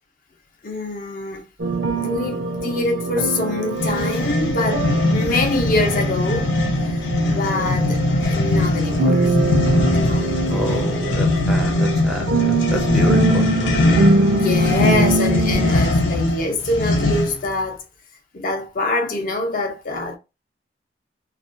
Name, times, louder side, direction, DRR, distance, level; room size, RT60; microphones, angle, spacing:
voice 1, 0.6-1.5 1.9-9.5 9.9-10.9 14.3-17.8 18.3-20.2, left 2 dB, 50° left, 0.5 m, -25 dB
sound 1, 1.6-15.7, right 2 dB, 75° right, 0.6 m, -23 dB
sound 2, 3.7-17.5, left 2 dB, 85° left, 0.7 m, -21 dB
voice 2, 10.5-14.4, equal, ahead, 0.4 m, -29 dB
2.4 x 2.2 x 2.5 m
head